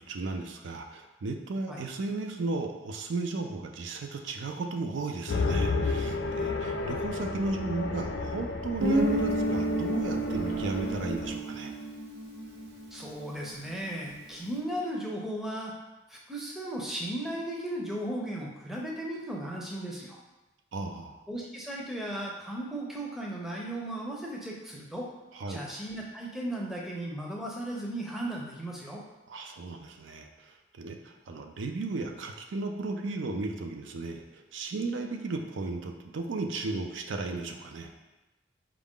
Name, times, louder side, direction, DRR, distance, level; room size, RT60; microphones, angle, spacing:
voice 1, 0.0-11.7 20.7-21.2 25.3-25.6 29.3-37.9, right 3 dB, 90° right, 4 dB, 0.4 m, -35 dB
sound 1, 5.3-11.3, left 3 dB, 75° left, 0.4 m, -32 dB
Guitar, 8.8-13.4, right 1 dB, 65° right, 0.9 m, -30 dB
voice 2, 12.9-15.7 16.1-20.2 21.3-25.1 25.5-29.0, right 1 dB, ahead, -3 dB, 0.5 m, -36 dB
4.6 x 2.5 x 3.6 m, 1.1 s
head